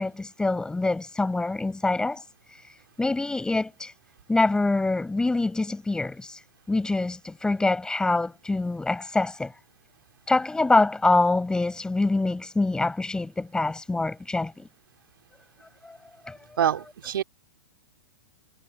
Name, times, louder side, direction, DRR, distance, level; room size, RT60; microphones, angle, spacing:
voice 1, 0.0-2.2 3.0-3.9 4.3-6.4 6.7-9.5 10.3-14.7 15.9-16.0 16.3-16.4, left 2 dB, 5° left, 5.1 m, -25 dB
voice 2, 16.6-17.2, right 10 dB, 70° right, 3.1 m, -25 dB
hypercardioid pair, 125°, 12 cm